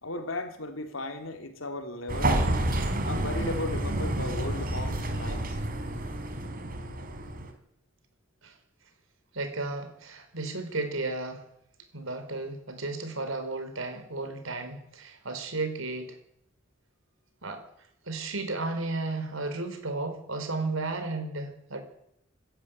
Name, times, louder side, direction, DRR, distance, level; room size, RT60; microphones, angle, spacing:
voice 1, 0.0-2.4 3.0-5.6, left 2 dB, 85° left, 3.2 m, -36 dB
sound 1, 2.1-7.5, right 1 dB, 45° right, 3.9 m, -29 dB
voice 2, 9.3-11.4 11.9-16.2 17.4-17.6 18.0-21.8, right 3 dB, 80° right, 5.0 m, -33 dB
27.0 x 13.5 x 9.1 m
head